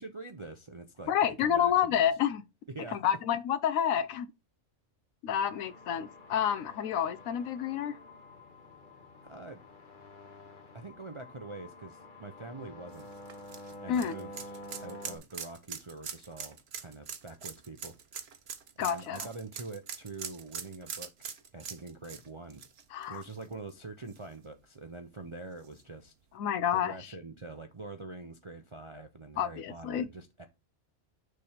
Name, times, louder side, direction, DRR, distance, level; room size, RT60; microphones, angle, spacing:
voice 1, 0.0-1.1 1.4-2.0 2.7-3.0 9.2-9.6 10.7-13.1 13.8-18.0 18.8-22.6 23.1-26.1 26.7-30.5, right 3 dB, 35° right, 0.5 m, -45 dB
voice 2, 1.1-2.4 2.9-4.3 5.2-8.0 13.9-14.1 18.8-19.3 22.9-23.2 26.3-27.0 29.4-30.1, left 9 dB, 90° left, 1.1 m, -29 dB
sound 1, 5.4-15.2, left 1 dB, 40° left, 1.1 m, -49 dB
sound 2, 12.9-23.7 24.1-24.2 25.6-25.7, right 7 dB, 55° right, 1.0 m, -43 dB
6.6 x 3.4 x 5.7 m
omnidirectional pair, 1.4 m